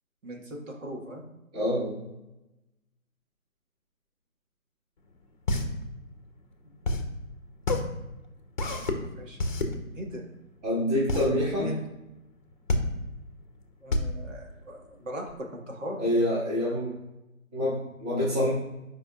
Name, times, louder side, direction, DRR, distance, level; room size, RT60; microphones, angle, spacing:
voice 1, 0.2-1.2 6.6-6.8 9.2-9.4 9.7-10.2 11.6-11.8 13.8-16.0, equal, 60° right, 0 dB, 1.7 m, -38 dB
voice 2, 1.5-2.0 10.6-11.7 16.0-16.9 17.5-18.5, left 1 dB, 30° right, -8 dB, 2.2 m, -26 dB
sound 1, 5.0-15.3, left 2 dB, 35° left, 0.8 m, -30 dB
8.1 x 5.0 x 2.4 m, 0.97 s
figure-of-eight pair, 155°, 42 cm